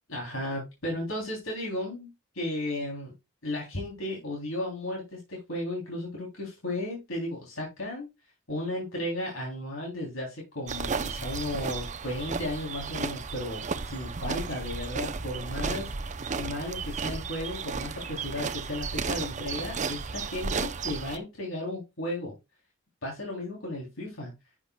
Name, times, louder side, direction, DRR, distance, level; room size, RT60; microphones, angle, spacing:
voice 1, 0.1-2.1 2.3-3.1 3.4-8.1 8.5-22.3 23.0-24.3, left 1 dB, 75° left, -1 dB, 3.5 m, -34 dB
sound 1, 10.7-21.2, right 4 dB, 35° right, 0.6 m, -34 dB
11.0 x 8.7 x 2.3 m, 0.24 s
head